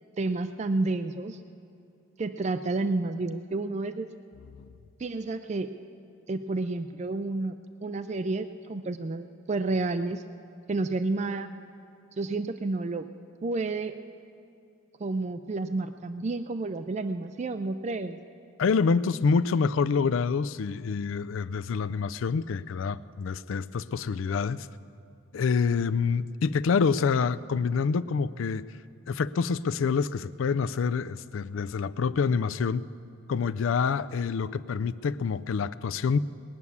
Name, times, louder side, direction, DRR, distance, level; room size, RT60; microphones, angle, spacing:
voice 1, 0.2-1.4 2.2-4.1 5.0-5.7 6.3-7.5 7.8-10.2 10.7-11.5 12.2-13.1 13.4-13.9 15.0-18.2, right 3 dB, 35° right, 10 dB, 0.3 m, -30 dB
voice 2, 18.6-24.7 25.3-28.6 29.1-32.8 33.3-36.2, left 5 dB, 70° left, 15 dB, 0.4 m, -27 dB
20.0 x 9.5 x 7.1 m, 2.6 s
head